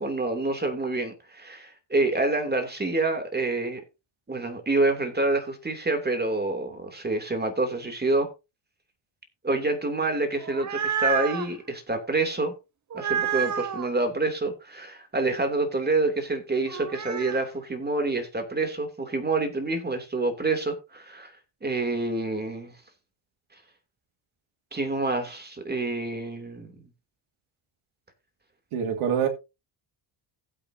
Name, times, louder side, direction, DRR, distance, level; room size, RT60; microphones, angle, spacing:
voice 1, 0.0-3.8 4.3-8.3 9.4-12.5 12.9-21.3 21.6-22.7 24.7-26.7, right 2 dB, 20° right, 2.8 m, -27 dB
sound 1, 10.3-11.5 12.9-13.9 16.7-17.4, right 8 dB, 35° right, 0.9 m, -29 dB
voice 2, 28.7-29.3, right 8 dB, 85° right, 2.6 m, -25 dB
16.0 x 8.1 x 2.7 m
cardioid pair, 105°, 49 cm